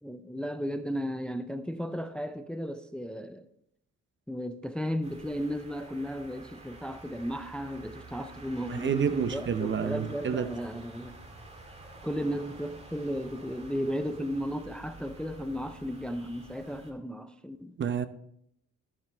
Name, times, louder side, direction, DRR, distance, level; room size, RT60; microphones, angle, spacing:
voice 1, 0.0-3.5 4.3-11.2 12.0-17.7, equal, 5° left, 0.5 m, -35 dB
sound 1, 5.0-16.9, right 2 dB, 20° right, 2.0 m, -49 dB
voice 2, 8.7-10.5 17.8-18.1, right 7 dB, 40° right, 0.7 m, -29 dB
13.5 x 7.5 x 3.4 m
cardioid pair, 90°, 30 cm